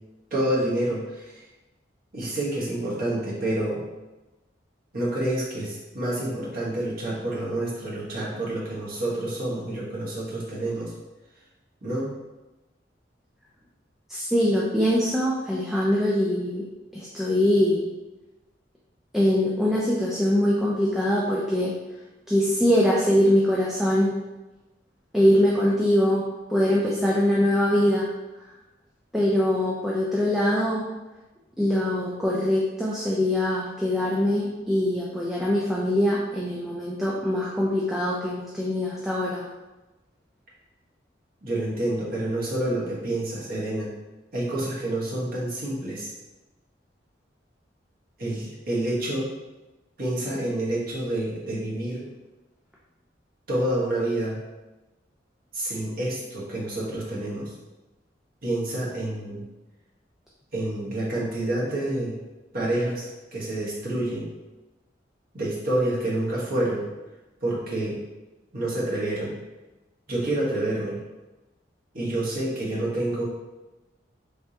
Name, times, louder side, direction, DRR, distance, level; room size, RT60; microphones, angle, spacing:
voice 1, 0.3-1.4 2.1-3.8 4.9-10.9 11.8-12.1 41.4-43.9 44.3-46.1 48.2-49.3 50.0-52.0 53.5-54.4 55.5-57.5 58.4-59.5 60.5-62.2 62.5-64.3 65.3-66.9 67.4-68.0 68.5-69.3 70.1-71.0 71.9-73.3, right 1 dB, 55° right, -6 dB, 1.2 m, -28 dB
voice 2, 14.1-16.7 16.9-17.8 19.1-21.8 22.3-24.3 25.1-28.1 29.1-30.9 31.6-39.4, left 1 dB, ahead, -6 dB, 0.4 m, -23 dB
3.4 x 3.3 x 2.8 m, 1.1 s
head